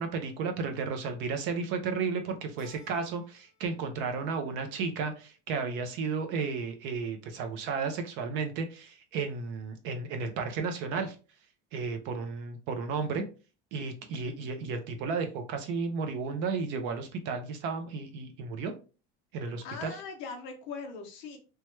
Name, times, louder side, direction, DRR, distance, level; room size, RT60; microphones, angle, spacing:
voice 1, 0.0-11.2 11.7-13.2 13.7-18.7 19.3-19.9, right 5 dB, 40° right, 6 dB, 0.4 m, -33 dB
Keyboard (musical), 2.6-3.7 4.0-4.8, left 2 dB, 75° left, 0.8 m, -57 dB
voice 2, 19.4-21.4, left 5 dB, 40° left, 3 dB, 0.7 m, -41 dB
3.0 x 2.2 x 3.0 m, 0.34 s
cardioid pair, 175°, 30 cm